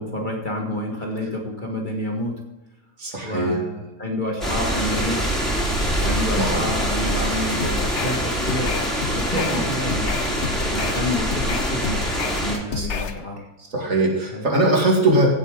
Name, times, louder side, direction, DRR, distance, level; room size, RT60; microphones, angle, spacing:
voice 1, 0.0-2.3 3.2-5.3 6.0-8.8 9.2-12.0 12.4-13.5 14.3-14.4, left 1 dB, 30° left, 0 dB, 1.8 m, -29 dB
voice 2, 3.0-3.6 6.4-6.6 9.3-9.6 12.7-13.0 13.7-15.3, right 1 dB, 50° right, -1 dB, 2.7 m, -21 dB
sound 1, 4.4-12.5, equal, ahead, 3.7 m, -24 dB
sound 2, 7.6-13.2, left 6 dB, 55° left, 0.9 m, -30 dB
16.0 x 8.3 x 3.8 m, 1.1 s
omnidirectional pair, 1.7 m